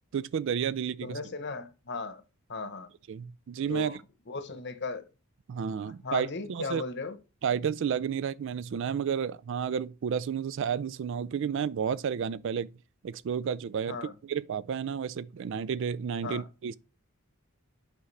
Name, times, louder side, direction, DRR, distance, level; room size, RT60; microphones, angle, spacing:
voice 1, 0.1-1.2 3.1-4.0 5.5-6.8 7.4-12.7 13.0-16.8, right 7 dB, 55° right, 0.3 m, -31 dB
voice 2, 1.0-2.2 2.5-2.9 3.7-4.0 4.3-5.0 6.0-7.2 13.9-14.1 16.2-16.4, left 3 dB, 50° left, 0.9 m, -36 dB
8.4 x 4.9 x 3.2 m
head